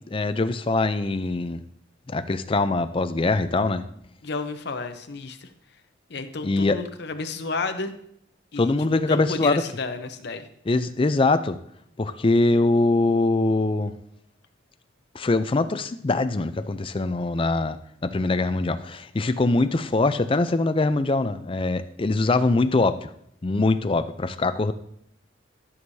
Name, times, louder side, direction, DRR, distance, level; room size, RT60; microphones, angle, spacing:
voice 1, 0.1-1.6 2.1-3.8 6.4-6.8 8.6-9.6 10.7-11.6 12.0-13.9 15.1-17.8 18.0-23.1 23.4-24.7, left 2 dB, 25° left, 10 dB, 0.4 m, -23 dB
voice 2, 4.2-5.5 6.1-7.9 8.5-8.7 9.1-10.5, left 3 dB, 55° left, 8 dB, 0.7 m, -31 dB
12.5 x 6.3 x 2.7 m, 0.70 s
head